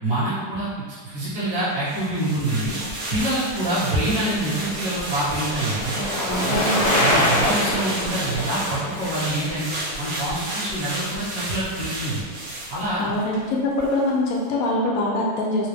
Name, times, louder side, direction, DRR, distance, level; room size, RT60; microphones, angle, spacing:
voice 1, 0.0-2.8 3.1-6.0 6.5-9.7 10.0-12.2 12.7-13.1, right 1 dB, 45° right, -11 dB, 1.5 m, -26 dB
sound 1, 1.8-13.4 13.8-13.9, right 1 dB, 60° right, 1.1 m, -32 dB
Bicycle, 3.0-11.5 11.8-11.9, left 1 dB, 40° left, 0.6 m, -27 dB
voice 2, 6.2-6.8 13.0-15.7, left 1 dB, 70° left, -1 dB, 0.9 m, -24 dB
4.0 x 2.0 x 3.3 m, 1.5 s
omnidirectional pair, 1.8 m